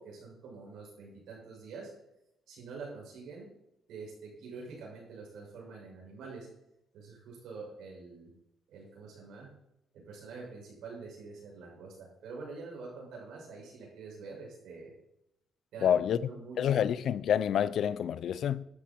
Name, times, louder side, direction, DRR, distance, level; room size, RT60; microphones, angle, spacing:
voice 1, 0.0-1.9 2.5-3.5 3.9-6.5 6.9-8.3 8.7-9.5 9.9-14.9 15.7-16.8, right 4 dB, 80° right, 6.7 m, -46 dB
voice 2, 15.8-16.2 16.6-18.6, left 9 dB, 70° left, 0.6 m, -28 dB
13.0 x 11.5 x 4.6 m
cardioid pair, 90°, 0 cm